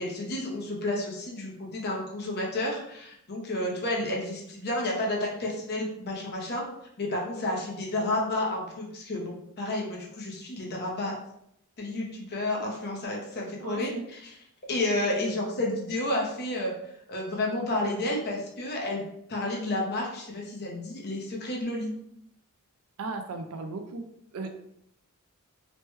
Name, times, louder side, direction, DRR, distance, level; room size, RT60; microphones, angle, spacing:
voice 1, 0.0-6.6 7.0-11.1 11.8-14.3 14.7-16.7 17.1-19.0 19.3-21.9, left 1 dB, 45° left, -1 dB, 0.7 m, -31 dB
voice 2, 13.6-14.0 23.0-24.0 24.3-24.5, right 3 dB, 70° right, 6 dB, 0.4 m, -36 dB
3.1 x 2.2 x 3.0 m, 0.74 s
head